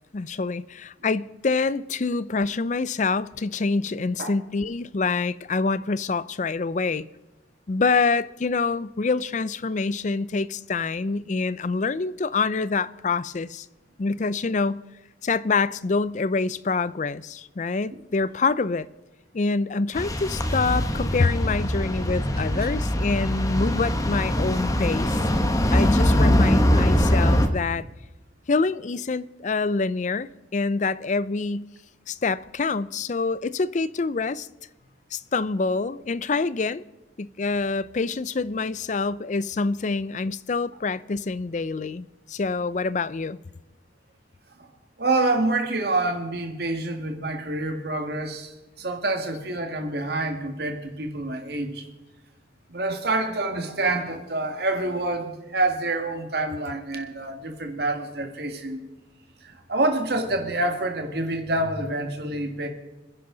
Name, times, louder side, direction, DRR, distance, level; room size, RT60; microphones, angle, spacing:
voice 1, 0.1-7.1 7.7-13.7 14.0-14.8 15.2-18.9 19.3-25.2 25.7-27.8 28.5-31.7 32.1-34.5 35.1-36.8 37.2-43.4, left 4 dB, 40° left, 0.4 m, -26 dB
sound 1, 20.0-27.5, equal, 20° left, 1.1 m, -22 dB
voice 2, 45.0-51.9 52.7-58.8 59.4-62.7, right 2 dB, 55° right, 2.0 m, -27 dB
27.5 x 10.5 x 3.9 m
head